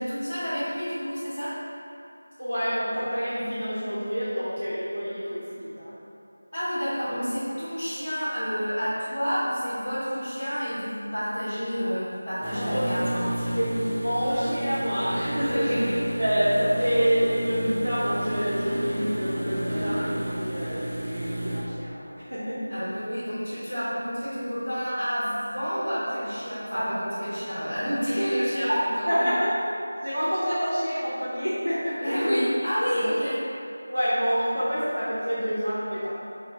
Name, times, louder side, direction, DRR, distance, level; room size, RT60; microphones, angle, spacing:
voice 1, 0.0-1.5 6.5-13.5 15.4-15.9 22.7-29.4 32.0-33.4, equal, 30° left, -16 dB, 1.2 m, -29 dB
voice 2, 2.4-6.0 12.5-12.8 13.1-13.2 13.6-15.8 16.2-22.7 26.7-26.9 28.6-28.7 29.0-29.5 30.0-32.4 32.9-33.0 33.9-36.1, equal, 75° right, -11 dB, 0.8 m, -27 dB
sound 1, 12.4-21.6, right 1 dB, 25° right, 0.5 m, -31 dB
2.9 x 2.9 x 3.7 m, 2.7 s
figure-of-eight pair, 170°, 0 cm